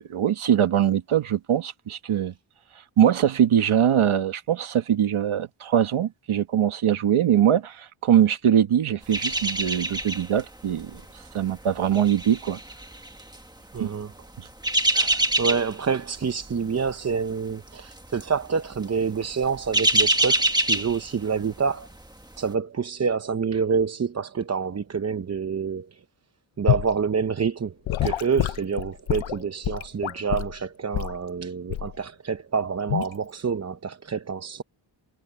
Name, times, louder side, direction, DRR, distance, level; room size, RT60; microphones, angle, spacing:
voice 1, 0.0-2.3 3.0-11.0 11.3-12.6 13.8-13.9 14.4-14.5 14.9-15.2, right 9 dB, 85° right, 1.5 m, -22 dB
sound 1, 9.1-10.4 10.7-11.0 11.7-13.4 14.3-15.9 16.2-16.5 16.8-16.9 17.9-18.3 18.6-18.8 19.2-21.5 21.9-22.0, right 1 dB, 10° right, 1.6 m, -24 dB
voice 2, 13.7-14.1 15.4-21.9 22.4-26.0 26.6-27.8 28.0-34.6, right 6 dB, 35° right, 0.7 m, -27 dB
Gurgling / Sink (filling or washing) / Liquid, 26.7-26.9 27.9-30.6 30.9-31.2 31.7-32.0 32.9-33.1, left 13 dB, 75° left, 0.7 m, -27 dB
wide cardioid pair, 140°, 48 cm